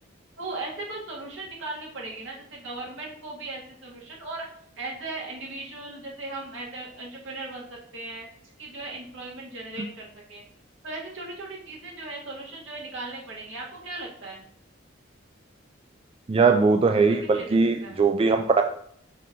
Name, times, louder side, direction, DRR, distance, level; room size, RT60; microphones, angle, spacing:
voice 1, 0.4-4.5 4.8-8.3 8.6-10.4 10.8-14.4 17.1-18.0, right 2 dB, 70° right, -2 dB, 1.8 m, -37 dB
voice 2, 16.3-18.6, right 4 dB, 30° right, 6 dB, 0.3 m, -20 dB
5.8 x 3.2 x 5.2 m, 0.65 s
head